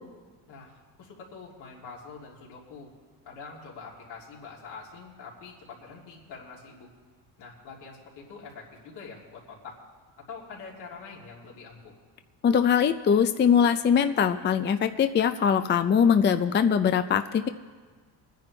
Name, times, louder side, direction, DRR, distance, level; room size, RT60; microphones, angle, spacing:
voice 1, 0.5-2.9 3.2-6.9 7.4-9.8 10.3-11.9, left 4 dB, 75° left, -3 dB, 3.1 m, -45 dB
voice 2, 12.4-17.5, left 7 dB, 25° left, 9 dB, 0.5 m, -22 dB
23.5 x 10.0 x 3.3 m, 1.5 s
cardioid pair, 95°, 41 cm